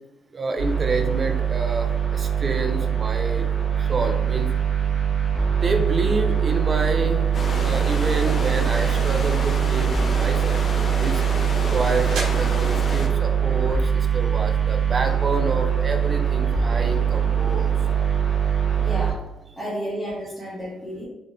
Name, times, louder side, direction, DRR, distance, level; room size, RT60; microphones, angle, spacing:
voice 1, 0.3-3.5 3.8-4.5 5.5-7.2 7.6-11.2 11.7-17.7, right 2 dB, 35° right, 5 dB, 0.4 m, -28 dB
sound 1, 0.6-19.1, right 8 dB, 55° right, 1.2 m, -22 dB
sound 2, 7.3-13.1, left 2 dB, 45° left, 0.6 m, -31 dB
sound 3, 11.7-15.3, right 2 dB, 90° right, 0.8 m, -41 dB
voice 2, 18.8-19.2 19.6-21.1, equal, 5° right, -10 dB, 0.9 m, -31 dB
3.7 x 2.1 x 2.5 m, 0.96 s
cardioid pair, 90°, 0 cm